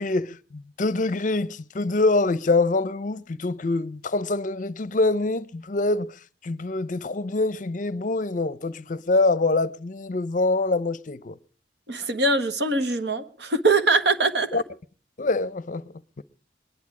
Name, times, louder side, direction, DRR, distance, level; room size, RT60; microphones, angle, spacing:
voice 1, 0.0-6.1 6.4-11.4 14.5-14.6 15.2-16.2, left 2 dB, 45° left, 0.6 m, -25 dB
voice 2, 11.9-14.6, right 3 dB, 70° right, 1.4 m, -22 dB
21.5 x 11.0 x 4.8 m
head